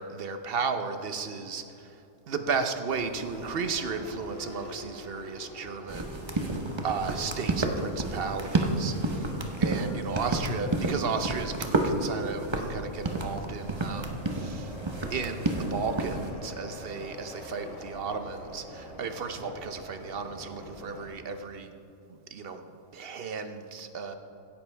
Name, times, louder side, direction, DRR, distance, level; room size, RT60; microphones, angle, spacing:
voice 1, 0.0-1.9 2.3-6.2 6.8-9.3 9.6-14.7 15.1-21.7 22.3-22.7 22.9-24.2, right 5 dB, 55° right, 8 dB, 0.9 m, -34 dB
sound 1, 2.9-21.1, left 1 dB, 85° left, 2.8 m, -45 dB
sound 2, 5.9-16.3, right 2 dB, 25° right, 0.7 m, -30 dB
16.5 x 9.9 x 3.4 m, 2.8 s
omnidirectional pair, 1.3 m